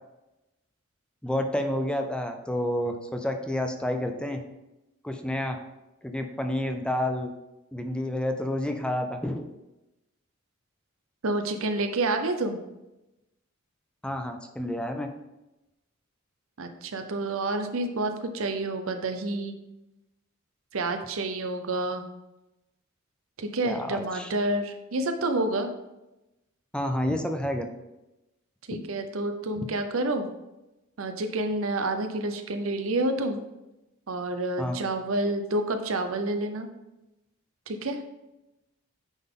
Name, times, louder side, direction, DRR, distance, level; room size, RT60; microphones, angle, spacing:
voice 1, 1.2-4.4 5.0-5.6 6.0-7.3 7.7-9.5 14.0-15.1 23.6-24.3 26.7-27.8 29.6-29.7 34.6-34.8, left 1 dB, 5° left, 5 dB, 0.5 m, -29 dB
voice 2, 11.2-12.6 16.6-19.6 20.7-22.0 23.4-25.7 28.7-30.3 31.0-33.4 34.1-36.7 37.7-38.0, right 2 dB, 70° right, 7 dB, 0.7 m, -29 dB
9.1 x 3.9 x 3.7 m, 0.96 s
head